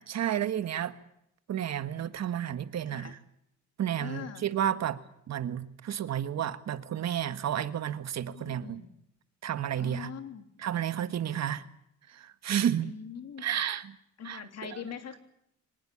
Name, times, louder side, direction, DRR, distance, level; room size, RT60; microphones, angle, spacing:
voice 1, 0.1-1.0 1.5-3.1 3.8-5.0 5.3-8.8 9.4-10.1 10.6-11.6 12.2-12.9 13.4-13.9 14.2-14.4, right 10 dB, 60° right, 12 dB, 1.5 m, -31 dB
voice 2, 2.9-3.2 4.0-4.5 8.3-8.9 9.8-10.5 12.8-13.4 14.2-15.2, left 7 dB, 55° left, 7 dB, 3.3 m, -42 dB
25.0 x 19.0 x 8.7 m, 0.76 s
cardioid pair, 90°, 30 cm